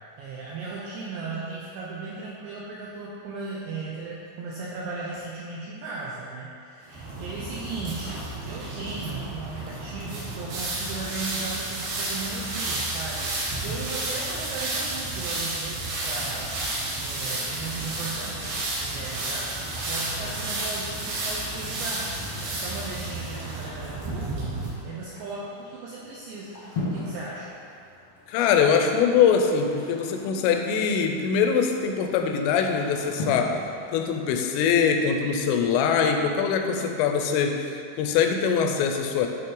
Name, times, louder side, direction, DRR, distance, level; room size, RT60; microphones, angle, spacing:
voice 1, 0.2-16.6 17.0-22.1 22.4-26.6 26.9-27.5, right 3 dB, 85° right, -5 dB, 2.5 m, -37 dB
sound 1, 6.9-24.7, right 2 dB, 65° right, 4.0 m, -31 dB
sound 2, 18.8-35.7, left 2 dB, 65° left, 1.4 m, -41 dB
voice 2, 28.3-33.6 33.9-39.3, left 6 dB, 85° left, 4 dB, 3.0 m, -23 dB
12.0 x 4.2 x 3.8 m, 2.4 s
omnidirectional pair, 5.9 m